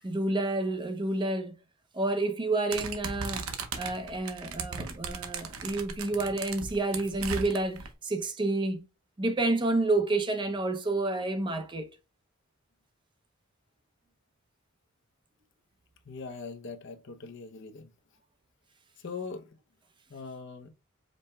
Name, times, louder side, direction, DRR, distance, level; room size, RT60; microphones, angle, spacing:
voice 1, 0.0-1.6 1.9-8.8 9.2-11.9, right 2 dB, 20° right, 0.5 m, -29 dB
sound 1, 2.7-7.9, right 5 dB, 85° right, 0.8 m, -37 dB
voice 2, 16.0-17.9 19.0-19.5 20.1-20.7, left 4 dB, 60° left, 0.6 m, -41 dB
5.2 x 2.1 x 4.2 m
head